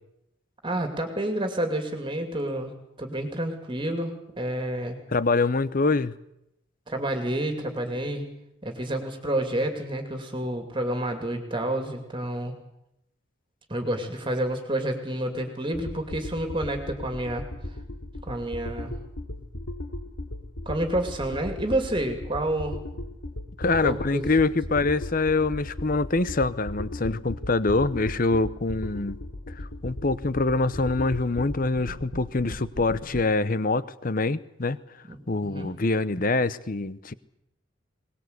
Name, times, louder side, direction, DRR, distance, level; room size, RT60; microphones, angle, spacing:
voice 1, 0.6-2.7 3.0-5.0 6.9-8.3 8.6-12.6 13.7-17.4 18.3-18.9 20.7-22.8 23.8-24.3 35.1-35.7, right 1 dB, 25° right, 5 dB, 2.6 m, -29 dB
voice 2, 5.1-6.1 23.6-29.2 29.6-34.8 35.3-37.1, left 3 dB, 40° left, 16 dB, 0.8 m, -25 dB
sound 1, 15.7-33.2, left 1 dB, 85° left, 2.9 m, -37 dB
22.0 x 20.0 x 8.2 m, 0.83 s
head